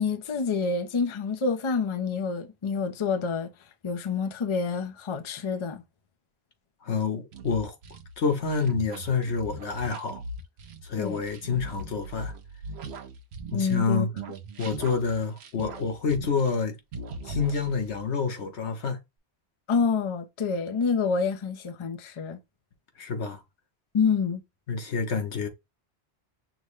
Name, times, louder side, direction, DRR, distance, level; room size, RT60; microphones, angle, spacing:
voice 1, 0.0-3.5 3.8-5.8 11.0-11.2 13.5-14.1 19.7-22.4 23.9-24.4, left 5 dB, 35° left, 0.5 m, -27 dB
voice 2, 6.8-7.7 8.2-10.2 10.8-12.3 13.5-14.1 14.6-16.8 17.2-19.0 23.0-23.4 24.7-25.5, left 5 dB, 85° left, 1.3 m, -28 dB
sound 1, 7.3-13.9 14.2-16.7 16.9-18.0, right 2 dB, 75° right, 0.9 m, -40 dB
6.1 x 2.1 x 3.1 m
omnidirectional pair, 1.1 m